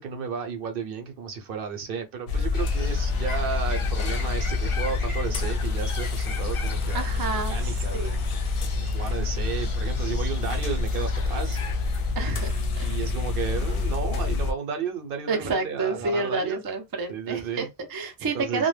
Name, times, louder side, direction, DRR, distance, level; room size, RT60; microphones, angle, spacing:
voice 1, 0.0-8.2 8.8-11.6 12.8-16.6 17.1-17.7 18.2-18.7, right 6 dB, 65° right, 0.8 m, -33 dB
sound 1, 2.3-14.5, left 3 dB, 70° left, 0.7 m, -27 dB
Bird, 2.5-12.1, left 5 dB, 45° left, 0.4 m, -40 dB
voice 2, 6.9-8.2 12.2-12.9 15.3-18.7, right 4 dB, 35° right, 0.4 m, -29 dB
2.1 x 2.1 x 3.1 m
omnidirectional pair, 1.0 m